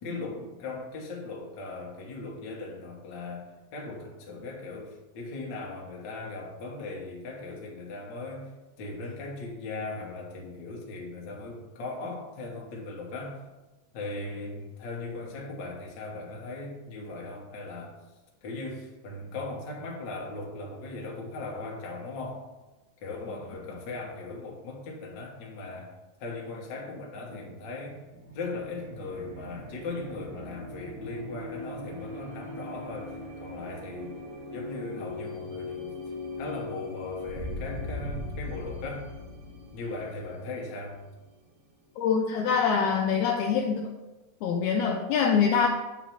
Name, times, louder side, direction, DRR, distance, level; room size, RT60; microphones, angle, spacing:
voice 1, 0.0-8.5 8.8-13.4 13.9-18.0 18.4-22.4 23.0-25.9 26.2-28.0 28.3-34.2 34.5-36.0 36.4-39.1 39.7-41.0, left 3 dB, 65° left, -2 dB, 1.1 m, -38 dB
sound 1, 28.1-41.5, left 2 dB, 85° right, 2.7 m, -40 dB
voice 2, 42.0-43.9 44.4-45.7, left 6 dB, 85° left, 2 dB, 1.7 m, -24 dB
8.3 x 3.1 x 5.8 m, 1.1 s
omnidirectional pair, 3.9 m